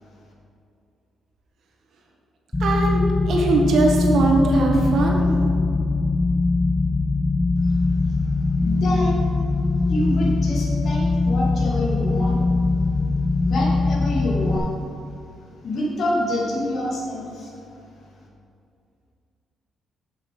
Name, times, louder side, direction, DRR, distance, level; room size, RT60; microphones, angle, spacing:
sound 1, 2.5-14.6, left 3 dB, 20° left, 1.1 m, -21 dB
voice 1, 2.6-5.2, right 3 dB, 70° right, 0 dB, 1.4 m, -20 dB
voice 2, 8.6-9.3 9.8-12.4 13.4-14.8 15.6-17.5, left 1 dB, 60° left, -3 dB, 2.1 m, -27 dB
6.8 x 6.7 x 5.2 m, 2.5 s
cardioid pair, 90°, 0 cm